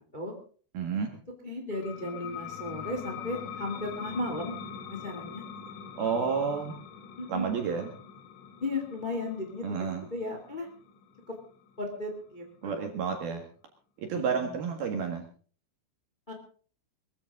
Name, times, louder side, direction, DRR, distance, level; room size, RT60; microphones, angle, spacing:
voice 1, 0.7-1.1 6.0-6.7 7.3-7.9 9.6-10.0 12.6-13.4 14.0-15.2, right 6 dB, 60° right, 4 dB, 3.0 m, -30 dB
voice 2, 1.4-4.6 4.9-5.4 7.2-7.5 8.6-10.7 11.3-11.4 11.8-12.9 14.1-14.7 16.3-16.4, left 2 dB, 60° left, 3 dB, 0.5 m, -35 dB
sound 1, 1.7-13.0, left 8 dB, 75° left, 3.9 m, -43 dB
22.0 x 14.5 x 3.7 m, 0.43 s
omnidirectional pair, 6.0 m